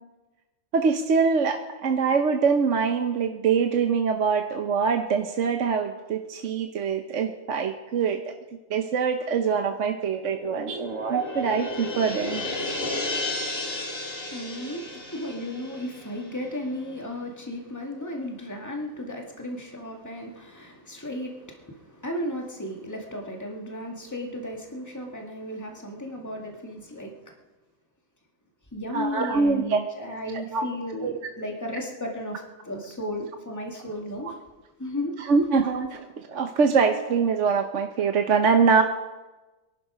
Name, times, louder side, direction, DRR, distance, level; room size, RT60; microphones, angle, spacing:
voice 1, 0.7-8.2 8.7-12.5 28.9-29.8 30.5-30.6 31.0-31.1 35.2-38.8, right 5 dB, 65° right, 5 dB, 1.2 m, -24 dB
sound 1, 10.2-16.7, left 2 dB, 45° left, 2.6 m, -33 dB
voice 2, 14.1-27.2 28.7-34.4 34.8-35.1, equal, 15° left, 1 dB, 2.2 m, -34 dB
22.5 x 12.0 x 5.1 m, 1.1 s
omnidirectional pair, 1.4 m